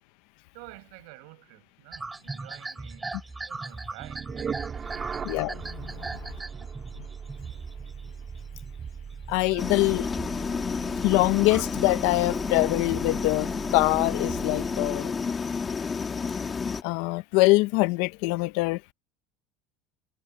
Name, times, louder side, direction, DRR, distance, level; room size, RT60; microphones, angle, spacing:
voice 1, 0.5-3.2 3.4-4.3 4.9-5.1 5.9-6.8 9.4-9.8, right 33 dB, 75° right, 5.8 m, -50 dB
sound 1, 1.9-8.7 9.0-10.1 10.5-11.9, right 3 dB, 10° right, 7.2 m, -40 dB
sound 2, 4.0-15.1, right 6 dB, 25° right, 2.1 m, -39 dB
voice 2, 5.2-6.1 9.3-10.1 11.0-15.1 16.8-18.8, left 22 dB, 70° left, 0.8 m, -24 dB
sound 3, 9.6-16.8, left 5 dB, 20° left, 1.8 m, -31 dB
cardioid pair, 140°, 0 cm